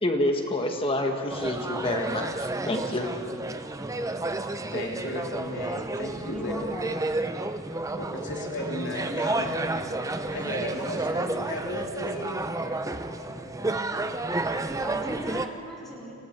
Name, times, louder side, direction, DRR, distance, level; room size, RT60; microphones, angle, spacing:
voice 1, 0.0-3.1, left 1 dB, 25° left, 3 dB, 1.7 m, -28 dB
sound 1, 1.3-15.5, right 2 dB, 15° right, 0.7 m, -31 dB
voice 2, 4.0-6.5 8.0-12.4 15.8-16.0, left 1 dB, 55° left, -1 dB, 3.5 m, -36 dB
voice 3, 6.3-6.9 14.8-16.1, right 1 dB, ahead, -5 dB, 4.3 m, -36 dB
sound 2, 7.9-15.3, right 1 dB, 45° right, 3.3 m, -45 dB
30.0 x 26.5 x 4.7 m, 2.6 s
head